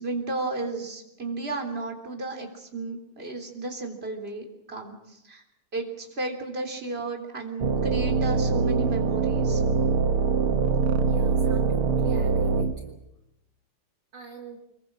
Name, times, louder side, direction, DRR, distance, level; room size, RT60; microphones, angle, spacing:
voice 1, 0.0-5.4 5.7-9.6, right 3 dB, 25° right, 3 dB, 3.7 m, -33 dB
sound 1, 7.6-12.7, right 5 dB, 80° right, 2.2 m, -23 dB
voice 2, 11.1-13.0 14.1-14.6, right 5 dB, 55° right, 2 dB, 2.6 m, -42 dB
25.5 x 21.5 x 7.6 m, 0.85 s
omnidirectional pair, 2.3 m